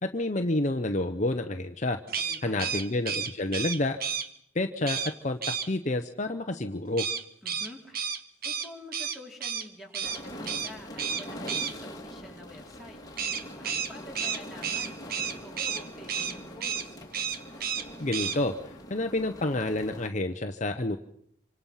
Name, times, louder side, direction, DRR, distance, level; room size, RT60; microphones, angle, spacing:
voice 1, 0.0-2.0 2.4-4.0 4.5-5.4 5.7-7.0 18.0-18.5 18.9-21.0, left 2 dB, 35° left, 6 dB, 0.9 m, -29 dB
sound 1, 2.1-4.3 4.8-5.1 5.4-5.7 7.0-9.6 9.9-10.2 10.4-10.7 11.0-11.7 13.2-15.8 16.1-16.3 16.6-16.8 17.1-17.8 18.1-18.4, right 7 dB, 50° right, 1.4 m, -31 dB
voice 2, 2.2-2.8 7.4-8.1 8.4-13.0 13.6-17.0, left 1 dB, ahead, 0 dB, 4.6 m, -48 dB
sound 2, 10.0-20.1, equal, 20° left, 2.7 m, -43 dB
27.0 x 25.5 x 5.7 m, 0.73 s
head